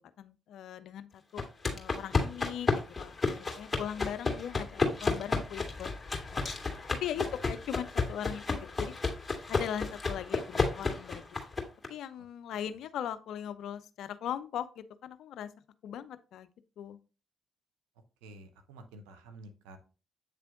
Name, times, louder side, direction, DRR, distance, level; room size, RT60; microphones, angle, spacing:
voice 1, 0.0-1.5 1.7-5.9 6.3-6.4 6.9-8.9 9.5-11.2 11.9-15.5 15.8-16.5 16.8-17.0, left 10 dB, 75° left, 13 dB, 0.5 m, -39 dB
sound 1, 1.4-11.9, left 3 dB, 30° left, 2.1 m, -32 dB
voice 2, 18.2-19.8, right 2 dB, 90° right, 7 dB, 0.8 m, -50 dB
8.2 x 3.4 x 3.7 m, 0.32 s
hypercardioid pair, 45°, 0 cm